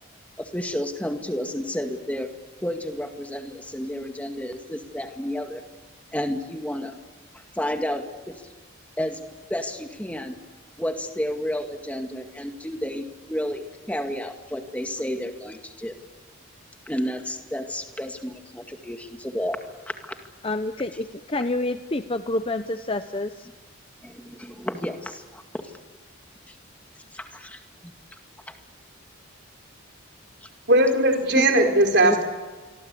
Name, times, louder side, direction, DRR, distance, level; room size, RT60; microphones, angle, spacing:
voice 1, 0.4-2.3 2.6-5.6 6.1-7.0 7.5-8.1 9.0-9.2 9.5-10.3 10.8-16.0 16.9-19.6 20.0-20.1 24.0-25.4 26.5-26.6 27.1-27.6 30.4-30.5 31.3-32.2, equal, 5° left, 5 dB, 2.0 m, -30 dB
voice 2, 20.4-23.5, left 2 dB, 25° left, 9 dB, 0.7 m, -28 dB
voice 3, 30.7-32.2, right 1 dB, 50° right, 3 dB, 4.3 m, -19 dB
27.0 x 23.5 x 8.5 m, 1.4 s
head